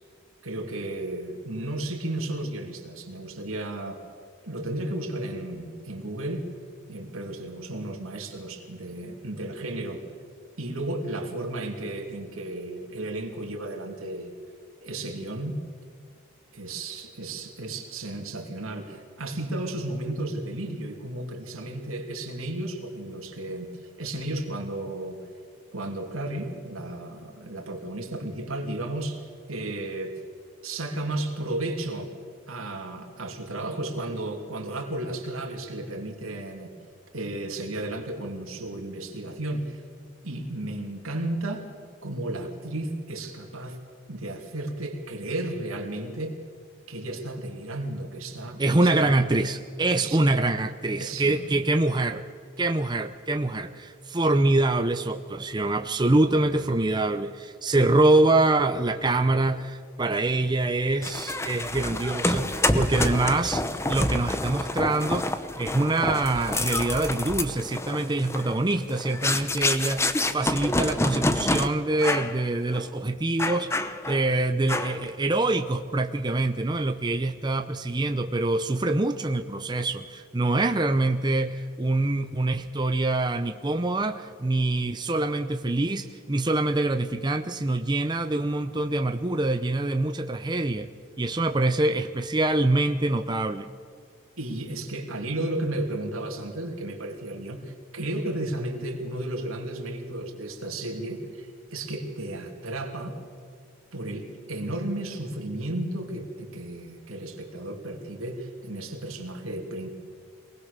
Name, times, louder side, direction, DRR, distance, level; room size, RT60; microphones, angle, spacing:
voice 1, 0.4-4.0 4.4-6.4 6.9-10.0 10.6-14.3 14.8-15.6 16.5-23.7 24.0-25.2 25.7-29.2 29.5-30.2 30.6-32.1 32.5-36.7 37.1-39.8 40.2-41.7 42.0-43.8 44.1-46.4 46.9-49.2 49.9-50.2 51.0-51.6 94.4-103.2 103.9-109.9, right 1 dB, 85° right, 3 dB, 2.9 m, -33 dB
voice 2, 48.6-52.2 52.6-65.3 65.6-73.7 74.1-90.9 91.2-93.7, right 2 dB, 20° right, 6 dB, 0.6 m, -25 dB
sound 1, 61.0-71.7 72.0-72.4 72.7-72.9 73.4-74.3 74.7-75.1, left 2 dB, 15° left, 0.8 m, -28 dB
23.0 x 19.5 x 6.8 m, 2.2 s
head